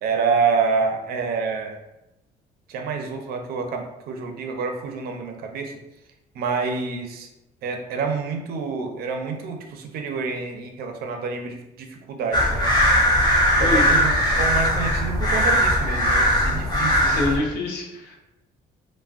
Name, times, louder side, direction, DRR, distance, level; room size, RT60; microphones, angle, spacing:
voice 1, 0.0-1.8 2.7-5.7 6.3-7.3 7.6-12.7 13.6-17.1, right 5 dB, 65° right, 4 dB, 0.5 m, -27 dB
sound 1, 12.3-17.4, equal, 25° left, 0.8 m, -19 dB
voice 2, 13.6-14.0 17.0-18.2, left 2 dB, 80° left, 0 dB, 0.7 m, -26 dB
3.3 x 2.1 x 2.4 m, 0.95 s
cardioid pair, 110°, 17 cm